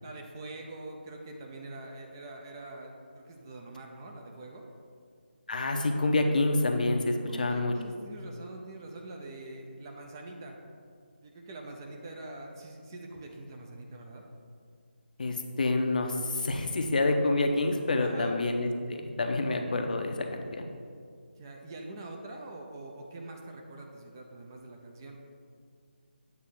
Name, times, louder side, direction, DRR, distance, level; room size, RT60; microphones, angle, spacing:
voice 1, 0.0-4.6 7.3-10.6 11.2-14.2 18.0-18.4 21.4-25.2, right 2 dB, 20° right, 1 dB, 0.5 m, -44 dB
voice 2, 5.5-7.7 15.2-20.7, left 2 dB, 45° left, 4 dB, 0.6 m, -28 dB
8.1 x 2.7 x 6.1 m, 2.2 s
figure-of-eight pair, 160°, 6 cm